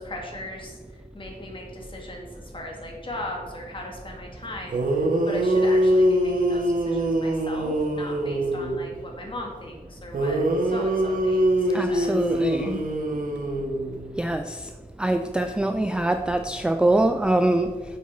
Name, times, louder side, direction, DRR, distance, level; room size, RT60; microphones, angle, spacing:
voice 1, 0.0-12.1, left 1 dB, 30° left, 0 dB, 2.0 m, -38 dB
sound 1, 4.4-4.5 4.7-8.9 10.1-14.2, right 1 dB, 55° right, 1.5 m, -23 dB
voice 2, 11.7-12.8 14.2-14.7 15.0-17.8, right 1 dB, 5° right, 6 dB, 0.3 m, -24 dB
9.3 x 7.4 x 4.3 m, 1.4 s
wide cardioid pair, 170°, 17 cm